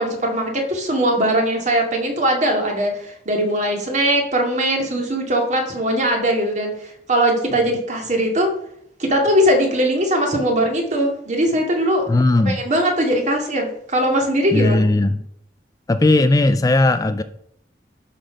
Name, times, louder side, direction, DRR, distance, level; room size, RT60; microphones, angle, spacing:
voice 1, 0.0-8.5 9.0-12.0 12.5-14.9, right 1 dB, 40° right, 2 dB, 2.3 m, -20 dB
voice 2, 12.1-12.6 14.5-15.3 15.9-17.2, left 2 dB, 20° left, 11 dB, 0.4 m, -17 dB
11.5 x 5.9 x 5.1 m, 0.72 s
head